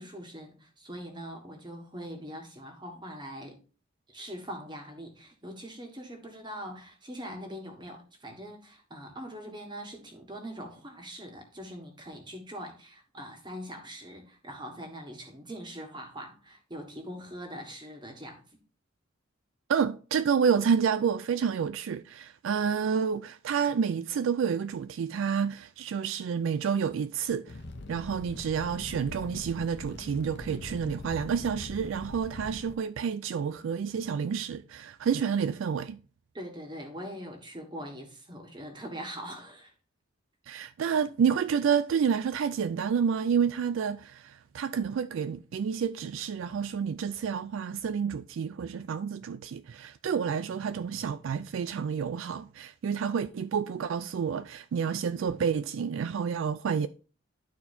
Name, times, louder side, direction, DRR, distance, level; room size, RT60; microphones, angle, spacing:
voice 1, 0.0-3.6 4.1-18.6 36.3-39.7, equal, 25° right, 1.5 m, -42 dB
voice 2, 19.7-27.6 27.9-36.0 40.5-56.9, right 7 dB, 70° right, 0.3 m, -29 dB
Fire, 27.5-32.8, left 2 dB, 60° left, 0.7 m, -43 dB
12.0 x 4.4 x 2.7 m
head